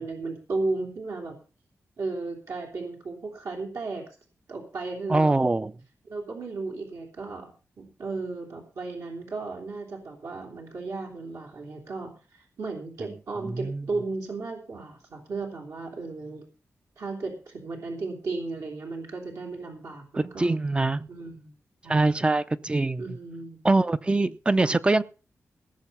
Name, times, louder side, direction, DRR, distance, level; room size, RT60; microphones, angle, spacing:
voice 1, 0.0-1.4 2.0-4.0 4.5-5.4 6.1-7.5 7.8-16.4 17.0-20.6 21.1-21.6 21.8-22.1 23.0-23.6 24.6-24.7, right 3 dB, 75° right, 0 dB, 3.3 m, -35 dB
voice 2, 5.1-5.7 13.4-13.9 20.2-21.1 21.9-23.0 23.6-25.0, right 2 dB, 20° right, 14 dB, 0.6 m, -23 dB
18.0 x 6.8 x 5.5 m, 0.36 s
wide cardioid pair, 125°, 5 cm